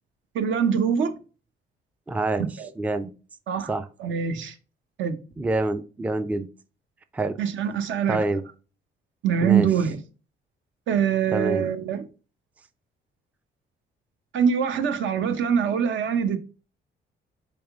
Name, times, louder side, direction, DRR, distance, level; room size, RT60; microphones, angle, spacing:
voice 1, 0.3-1.1 2.6-2.7 3.5-3.7 4.0-4.5 5.0-5.2 7.4-8.2 9.2-10.0 10.9-12.0 14.3-16.4, right 7 dB, 75° right, 0.7 m, -23 dB
voice 2, 2.1-2.5 2.8-3.1 3.7-3.9 5.4-6.5 7.1-7.4 8.1-8.4 9.4-9.7 11.3-11.7, right 2 dB, 5° right, 0.3 m, -26 dB
3.6 x 3.5 x 3.4 m
cardioid pair, 90°, 20 cm